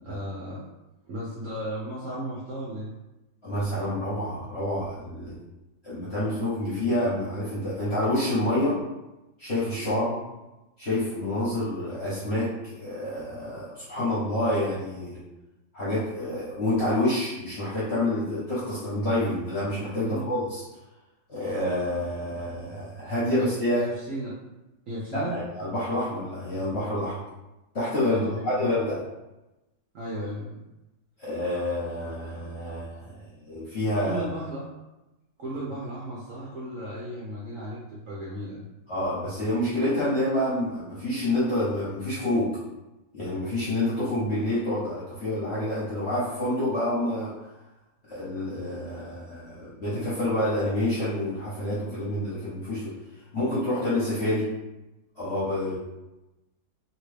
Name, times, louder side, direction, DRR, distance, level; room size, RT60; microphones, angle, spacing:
voice 1, 0.0-0.6 1.0-2.9 10.0-10.2 20.0-20.3 23.4-23.5 23.7-24.3 24.9-25.4 28.1-28.6 29.9-30.6 34.1-34.6 35.4-38.6, right 1 dB, 65° right, -7 dB, 0.8 m, -35 dB
voice 2, 3.4-5.3 5.8-8.7 9.4-10.1 10.8-15.2 15.7-20.6 21.3-23.8 25.1-27.1 27.7-29.0 31.2-34.2 38.9-42.5 43.1-47.3 48.1-52.9 53.3-54.4 55.1-55.8, left 1 dB, 50° left, -9 dB, 0.8 m, -28 dB
2.9 x 2.6 x 3.2 m, 0.99 s
omnidirectional pair, 2.1 m